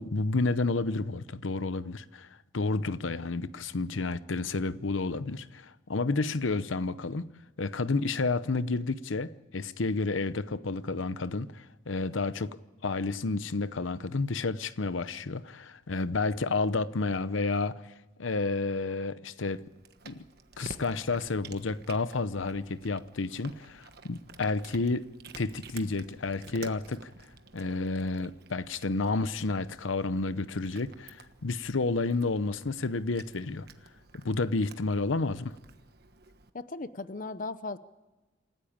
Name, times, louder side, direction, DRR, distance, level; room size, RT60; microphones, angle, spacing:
voice 1, 0.0-2.3 2.5-7.3 7.6-12.6 12.8-17.8 18.2-19.6 20.0-20.2 20.6-25.1 25.4-27.1 27.5-33.7 34.2-35.6, left 3 dB, 85° left, 0.8 m, -30 dB
Cat, 19.4-36.5, right 4 dB, 55° right, 1.3 m, -51 dB
voice 2, 36.5-37.8, left 3 dB, 45° left, 0.7 m, -37 dB
27.5 x 15.0 x 8.7 m
head